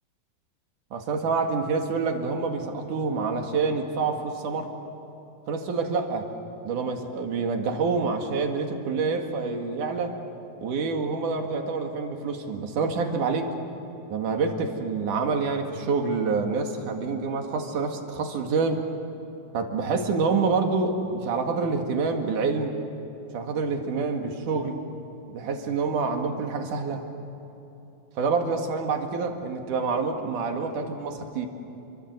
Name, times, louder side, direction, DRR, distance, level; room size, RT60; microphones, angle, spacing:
voice 1, 0.9-4.7 5.5-6.3 6.6-10.2 10.6-13.5 14.1-18.8 19.5-22.8 23.3-24.8 25.3-27.0 28.2-31.5, right 4 dB, 70° right, 3 dB, 3.5 m, -27 dB
29.5 x 24.5 x 8.0 m, 3.0 s
omnidirectional pair, 3.7 m